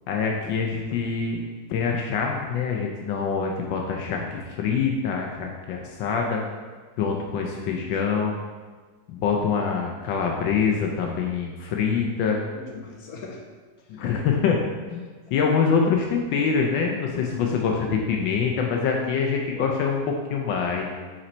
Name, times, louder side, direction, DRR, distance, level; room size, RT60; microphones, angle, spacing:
voice 1, 0.1-1.4 1.7-6.4 7.0-8.3 9.1-12.4 13.9-14.6 14.9-20.9, left 6 dB, 80° left, 1 dB, 1.4 m, -25 dB
voice 2, 7.1-7.9 12.2-13.4 19.5-19.7, left 4 dB, 55° left, 1 dB, 1.3 m, -42 dB
7.6 x 4.4 x 4.2 m, 1.4 s
omnidirectional pair, 2.0 m